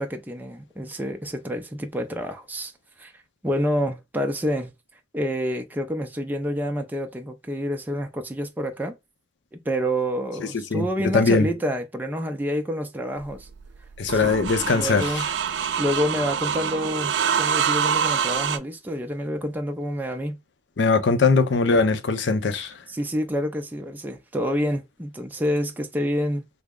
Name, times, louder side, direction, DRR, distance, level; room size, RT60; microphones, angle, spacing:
voice 1, 0.0-2.7 3.0-3.1 3.4-4.7 5.1-9.0 9.5-13.5 14.1-15.3 15.8-20.4 22.9-26.5, equal, 10° right, 0.4 m, -28 dB
voice 2, 11.1-11.5 14.0-15.1 20.8-22.7, left 4 dB, 85° left, 0.5 m, -20 dB
sound 1, 13.2-18.6, right 7 dB, 75° right, 0.4 m, -26 dB
3.4 x 2.0 x 3.6 m
head